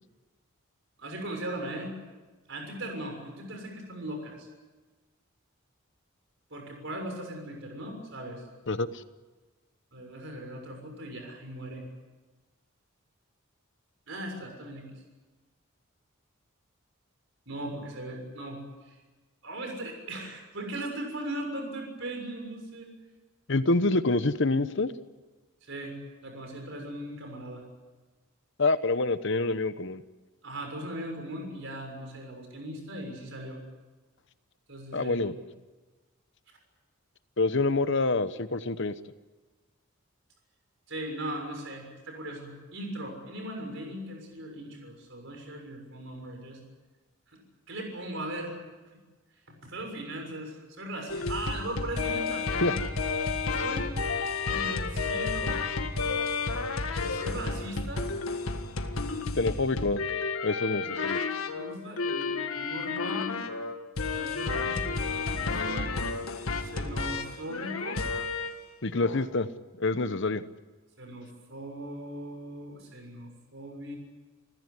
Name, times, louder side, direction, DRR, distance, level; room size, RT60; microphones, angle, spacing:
voice 1, 1.0-1.9 2.5-4.5 6.5-8.4 9.9-11.8 14.1-15.0 17.5-19.0 19.4-22.9 25.6-25.9 26.2-27.6 30.4-33.6 34.7-35.2 40.9-46.6 47.3-47.4 47.7-48.6 48.9-49.0 49.6-52.7 53.5-53.9 54.4-55.6 56.9-58.1 60.8-60.9 61.5-63.4 64.1-65.1 65.5-65.9 66.6-68.0 71.0-74.0, right 1 dB, 60° right, 3 dB, 6.7 m, -39 dB
voice 2, 8.7-9.0 23.5-24.9 28.6-30.0 34.9-35.3 37.4-38.9 52.6-52.7 59.4-60.0 60.4-61.2 68.8-69.5 69.8-70.4, left 2 dB, 60° left, 13 dB, 1.0 m, -26 dB
sound 1, 51.1-68.6 69.0-69.3, left 4 dB, 80° left, 1.7 m, -31 dB
29.5 x 15.5 x 9.8 m, 1.3 s
head